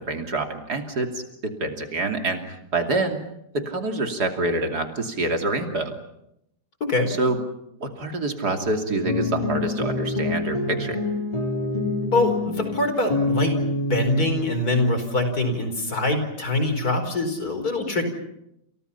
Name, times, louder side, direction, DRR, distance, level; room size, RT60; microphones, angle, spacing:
voice 1, 0.0-2.4 2.7-3.2 3.5-5.9 7.1-7.4 7.8-11.0, right 2 dB, 70° right, 4 dB, 3.4 m, -26 dB
voice 2, 6.8-7.1 12.1-18.1, left 2 dB, 60° left, 7 dB, 5.2 m, -24 dB
sound 1, 9.0-14.4, left 2 dB, 20° left, 3.7 m, -26 dB
29.0 x 28.5 x 5.8 m, 0.80 s
omnidirectional pair, 1.8 m